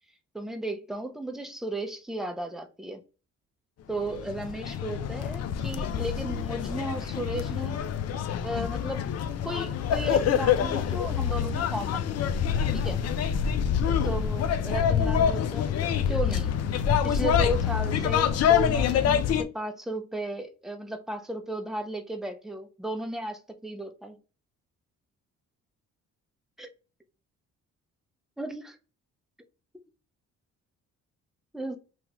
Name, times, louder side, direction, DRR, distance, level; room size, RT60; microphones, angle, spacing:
voice 1, 0.3-3.0 3.9-7.8 8.4-9.1 9.4-12.2 12.7-13.0 13.9-15.8 16.1-16.5 17.0-24.2 26.6-26.7 28.4-28.6 31.5-31.8, right 1 dB, ahead, 0.5 m, -34 dB
sound 1, 4.0-19.4, left 8 dB, 55° left, 0.5 m, -26 dB
3.0 x 2.3 x 2.9 m
cardioid pair, 90°, 30 cm